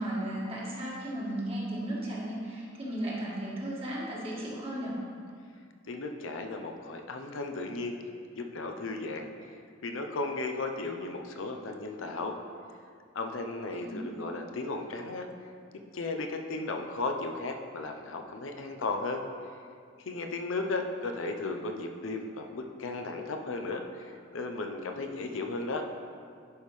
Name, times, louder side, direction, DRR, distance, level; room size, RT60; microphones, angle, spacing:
voice 1, 0.0-5.0 13.7-14.0, right 1 dB, 30° right, -6 dB, 1.7 m, -35 dB
voice 2, 5.9-8.0 8.3-9.5 9.8-12.4 13.1-15.3 15.9-19.2 20.0-25.8, left 3 dB, 75° left, 4 dB, 0.6 m, -35 dB
10.5 x 5.4 x 3.2 m, 2.2 s
head